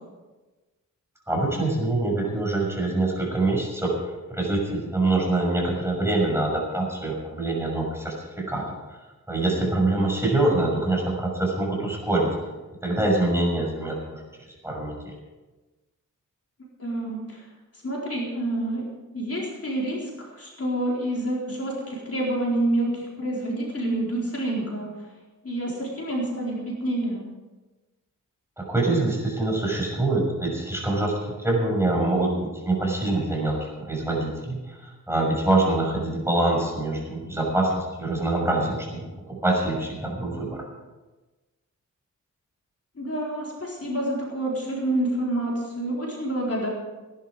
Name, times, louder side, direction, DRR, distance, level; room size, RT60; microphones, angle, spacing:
voice 1, 1.3-3.9 4.3-8.6 9.3-12.3 12.8-14.2 14.6-15.1 28.6-39.0 39.3-40.6, right 2 dB, 10° right, -2 dB, 6.3 m, -25 dB
voice 2, 16.8-17.5 17.8-18.8 19.1-24.9 25.4-27.2 43.0-46.7, right 1 dB, 45° left, -3 dB, 4.3 m, -28 dB
18.5 x 11.5 x 4.9 m, 1.2 s
wide cardioid pair, 85°, 32 cm